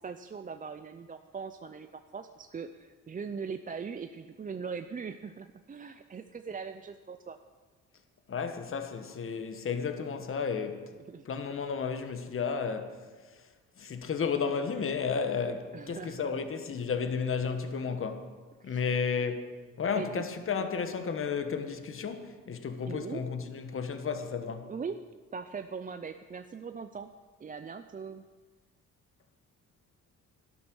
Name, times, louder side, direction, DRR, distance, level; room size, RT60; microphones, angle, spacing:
voice 1, 0.0-7.4 11.0-11.3 15.7-16.3 18.6-18.8 19.9-20.1 22.9-23.2 24.7-25.0 25.3-27.1 27.4-28.2, right 5 dB, 25° right, 0.6 m, -40 dB
voice 2, 8.3-10.8 11.2-13.0 13.3-13.4 13.8-18.3 18.6-19.5 19.8-24.7, left 6 dB, 45° left, 1.4 m, -32 dB
12.0 x 12.0 x 6.2 m
cardioid pair, 90°, 30 cm